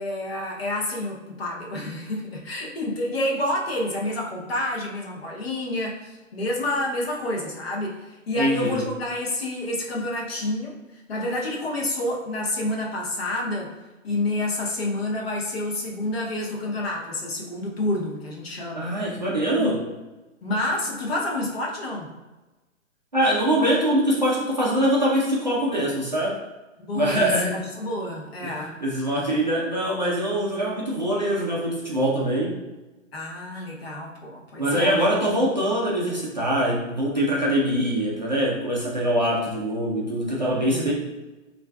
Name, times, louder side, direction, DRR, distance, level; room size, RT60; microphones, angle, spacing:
voice 1, 0.0-10.8 11.1-13.7 14.0-18.9 19.6-19.8 20.4-22.1 26.8-28.8 33.1-34.9 40.7-40.9, left 1 dB, 50° left, -2 dB, 0.8 m, -28 dB
voice 2, 8.4-8.8 18.8-19.8 23.1-26.4 26.9-27.7 28.4-32.6 34.6-40.9, right 1 dB, 35° right, -5 dB, 0.4 m, -23 dB
4.2 x 2.4 x 2.2 m, 1.1 s
hypercardioid pair, 170°, 39 cm